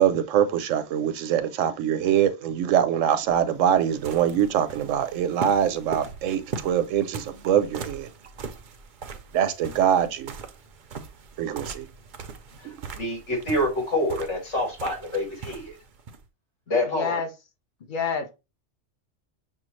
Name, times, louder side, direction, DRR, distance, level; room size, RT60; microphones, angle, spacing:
voice 1, 0.0-8.1 9.3-10.3 11.4-11.9 12.6-12.8, right 9 dB, 80° right, 1.0 m, -23 dB
sound 1, 3.3-16.2, right 5 dB, 55° right, 0.6 m, -40 dB
voice 2, 12.6-15.8 16.7-17.2, left 1 dB, 65° left, 2.4 m, -27 dB
voice 3, 16.9-17.3 17.8-18.4, left 6 dB, 45° left, 0.9 m, -28 dB
6.2 x 2.3 x 3.0 m
omnidirectional pair, 1.3 m